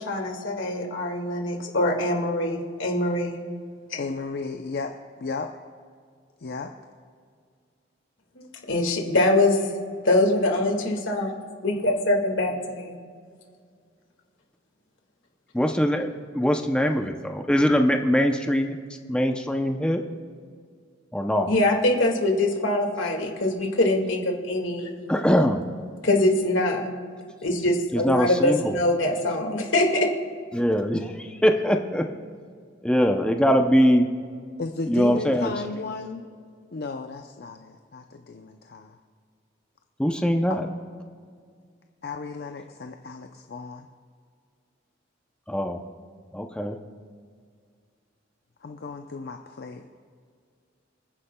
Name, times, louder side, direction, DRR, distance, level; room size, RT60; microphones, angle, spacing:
voice 1, 0.0-3.4 8.4-9.6 10.0-11.3 11.6-12.5 21.5-25.0 26.0-26.9 27.4-30.1, left 1 dB, 80° left, 2 dB, 1.9 m, -23 dB
voice 2, 4.0-5.5 6.4-6.7 34.6-36.3 36.7-39.0 42.0-43.9 48.6-49.9, left 3 dB, 55° left, 4 dB, 0.6 m, -34 dB
voice 3, 15.5-16.1 16.3-18.7 19.1-20.0 21.1-21.5 25.1-25.6 27.9-28.6 30.5-31.1 31.4-32.0 32.8-34.1 34.9-35.5 40.0-40.7 45.5-45.8 46.3-46.8, equal, 5° left, 4 dB, 0.6 m, -22 dB
27.0 x 9.8 x 2.2 m, 2.1 s
head